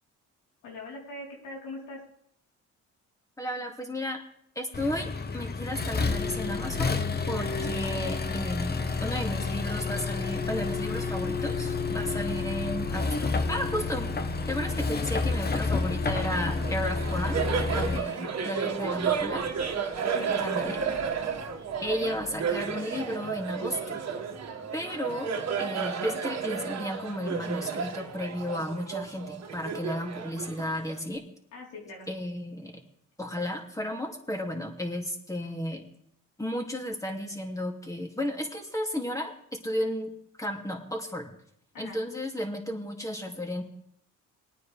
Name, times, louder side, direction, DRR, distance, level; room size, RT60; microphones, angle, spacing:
voice 1, 0.6-2.0 7.4-7.7 17.9-18.3 20.1-20.8 21.9-22.3 31.5-32.1 41.7-42.0, left 2 dB, 90° left, -2 dB, 4.0 m, -42 dB
voice 2, 3.4-4.2 4.6-7.0 7.3-14.1 14.5-17.4 17.7-19.4 20.3-20.8 21.8-24.0 24.7-25.3 25.6-31.2 32.1-32.8 33.2-35.9 36.4-40.1 40.4-41.3 41.8-43.6, left 1 dB, 10° left, 2 dB, 2.5 m, -33 dB
Accelerating revving vroom, 4.7-18.0, left 4 dB, 30° left, 1.1 m, -30 dB
Laughter, 16.1-31.1, right 6 dB, 60° right, 1.8 m, -32 dB
21.0 x 9.4 x 3.4 m, 0.71 s
cardioid pair, 90°, 30 cm